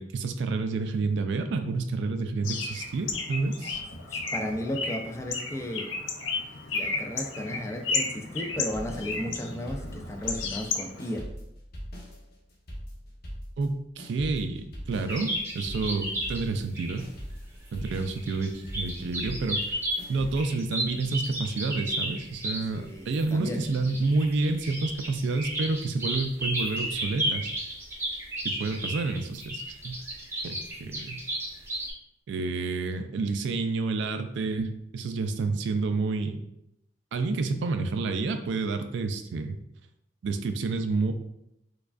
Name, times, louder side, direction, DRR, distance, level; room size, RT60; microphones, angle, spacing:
voice 1, 0.0-3.8 13.6-17.1 17.7-19.8 20.1-27.6 28.4-30.0 30.4-31.2 32.3-36.4 37.1-39.6 40.2-41.1, right 3 dB, 70° right, 7 dB, 0.3 m, -29 dB
Bird, 2.4-11.2, left 4 dB, 85° left, 0.5 m, -33 dB
voice 2, 4.1-5.9 6.7-11.3 22.7-23.6, left 1 dB, 15° left, 4 dB, 0.3 m, -34 dB
sound 1, 8.7-10.7 11.0-16.7 17.0-20.4, equal, 55° left, 0.9 m, -41 dB
sound 2, 15.1-22.7 23.1-31.9, right 1 dB, 15° right, 0.7 m, -33 dB
4.6 x 2.3 x 2.4 m, 0.82 s
head